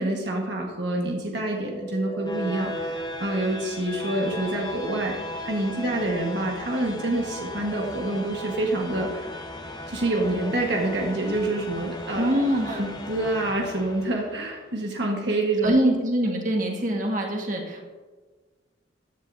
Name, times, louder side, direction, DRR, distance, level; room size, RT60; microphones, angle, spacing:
voice 1, 0.0-5.2 5.4-9.4 9.9-12.4 12.7-15.7, right 1 dB, 65° right, 0 dB, 1.5 m, -27 dB
sound 1, 1.5-14.5, equal, 20° left, 0.9 m, -36 dB
voice 2, 12.2-12.8 15.6-17.9, equal, 45° right, 0 dB, 1.7 m, -24 dB
15.0 x 10.0 x 2.7 m, 1.3 s
head